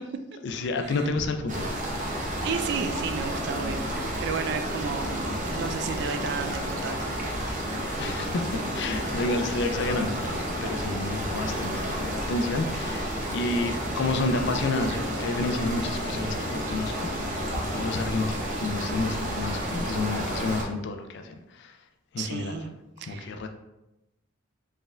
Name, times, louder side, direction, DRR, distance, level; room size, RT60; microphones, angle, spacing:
voice 1, 0.4-2.0 8.0-16.9 17.2-18.3 18.6-21.8 22.1-22.6 23.1-23.5, left 2 dB, 60° left, 6 dB, 0.4 m, -30 dB
sound 1, 1.5-20.6, equal, 40° right, 0.7 m, -31 dB
voice 2, 2.4-3.9 4.2-7.1 22.2-22.7 23.0-23.3, right 6 dB, 55° right, 8 dB, 0.3 m, -32 dB
sound 2, 7.4-7.8 8.9-9.0 9.3-9.4 9.6-10.0 11.1-11.5 12.0-12.1 12.4-13.0 14.3-14.5 15.2-15.5 15.8-16.1 16.5-16.6 16.8-16.9 17.5-18.4 18.8-18.9 19.1-19.6 19.9-20.1, equal, 5° right, 1.0 m, -42 dB
4.2 x 3.6 x 2.2 m, 0.94 s
head